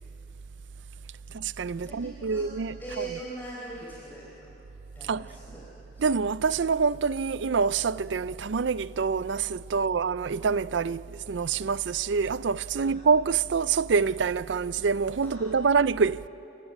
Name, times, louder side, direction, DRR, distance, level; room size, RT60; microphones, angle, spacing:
voice 1, 1.3-3.0 5.1-5.3 6.0-16.3, right 5 dB, 70° right, 0.5 m, -26 dB
voice 2, 1.9-2.5 2.8-4.6 4.9-5.6 5.9-6.0 9.7-10.1 12.8-13.0 15.2-15.7, right 2 dB, 10° left, 4.3 m, -41 dB
29.0 x 17.0 x 8.5 m
head